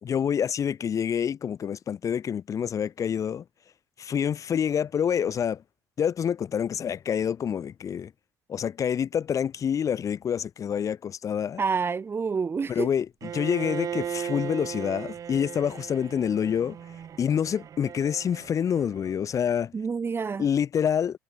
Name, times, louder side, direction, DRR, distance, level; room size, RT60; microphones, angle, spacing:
voice 1, 0.0-3.4 4.0-5.6 6.0-8.1 8.5-11.6 12.7-16.8 17.2-19.7 20.4-21.2, left 8 dB, 45° left, 5.4 m, -27 dB
voice 2, 11.6-12.9 19.7-20.4, right 5 dB, 30° right, 1.8 m, -28 dB
Bowed string instrument, 13.2-19.2, right 8 dB, 50° right, 8.0 m, -37 dB
hypercardioid pair, 65°, 7 cm